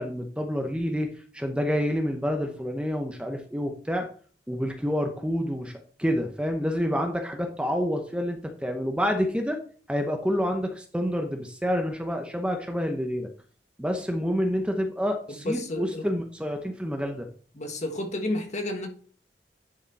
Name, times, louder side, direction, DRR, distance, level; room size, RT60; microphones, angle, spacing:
voice 1, 0.0-4.1 4.5-9.6 9.9-13.3 13.8-17.3, equal, 5° right, 0.8 m, -28 dB
voice 2, 15.3-16.0 17.5-18.9, left 1 dB, 40° left, 1.6 m, -31 dB
10.5 x 4.9 x 4.1 m
head